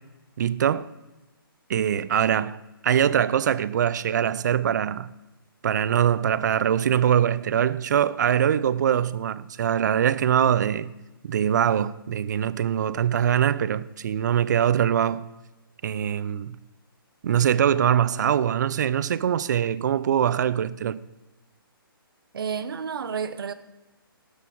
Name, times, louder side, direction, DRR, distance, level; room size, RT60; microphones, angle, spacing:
voice 1, 0.4-0.9 1.7-2.6 2.8-5.1 5.6-10.9 11.2-15.2 15.8-16.6 17.2-21.0, right 9 dB, 50° right, 0.5 m, -23 dB
voice 2, 22.3-23.5, right 6 dB, 70° right, 0.9 m, -30 dB
13.0 x 9.2 x 4.6 m
hypercardioid pair, 155°, 12 cm